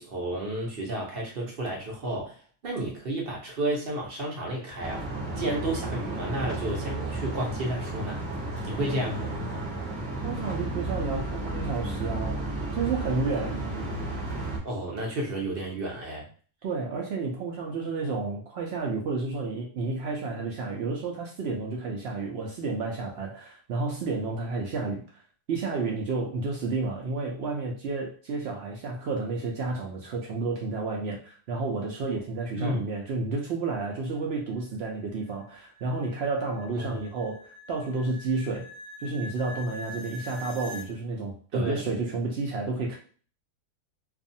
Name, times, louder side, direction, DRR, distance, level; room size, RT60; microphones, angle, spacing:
voice 1, 0.0-5.1 5.4-8.2 8.6-9.3 14.6-16.3 32.6-32.8 36.7-37.0 41.5-41.8, right 1 dB, 50° right, -2 dB, 0.8 m, -32 dB
sound 1, 4.8-14.6, right 2 dB, 15° right, 1.2 m, -33 dB
voice 2, 10.2-12.4 12.7-13.6 16.6-25.2 25.5-38.7 39.0-43.0, right 3 dB, 75° right, 0 dB, 0.5 m, -31 dB
sound 2, 33.7-40.9, left 1 dB, 60° left, 0.7 m, -45 dB
2.5 x 2.3 x 2.6 m, 0.41 s
omnidirectional pair, 1.6 m